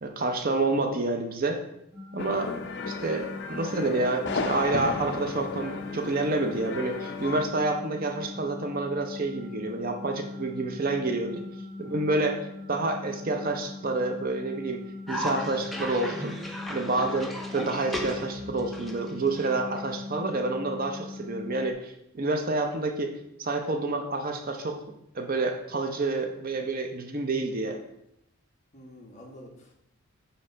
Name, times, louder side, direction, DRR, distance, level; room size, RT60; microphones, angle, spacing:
voice 1, 0.0-1.6 2.1-2.5 2.9-11.5 11.8-12.4 12.7-16.3 16.7-23.1 23.4-24.8 25.1-27.8, right 2 dB, 40° right, 4 dB, 0.7 m, -28 dB
sound 1, 1.9-21.7, left 3 dB, 20° right, 1.7 m, -41 dB
sound 2, 2.2-7.4, left 4 dB, 55° left, 0.6 m, -34 dB
Cough, 15.1-20.1, equal, ahead, 0.6 m, -36 dB
voice 2, 28.7-29.7, left 1 dB, 35° left, -1 dB, 1.3 m, -48 dB
8.5 x 3.1 x 5.6 m, 0.79 s
head